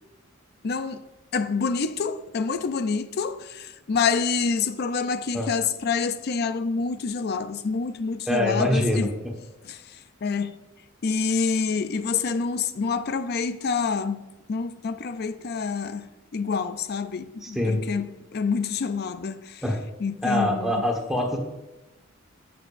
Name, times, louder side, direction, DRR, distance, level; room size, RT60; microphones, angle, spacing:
voice 1, 0.6-1.0 1.3-9.2 9.6-9.8 10.2-10.6 11.0-16.1 16.3-19.6 20.0-20.9, left 5 dB, 55° left, 0.5 m, -27 dB
voice 2, 8.3-9.1 17.4-17.8 19.6-19.8 20.2-21.4, left 1 dB, ahead, 1.3 m, -24 dB
11.5 x 6.8 x 2.5 m
head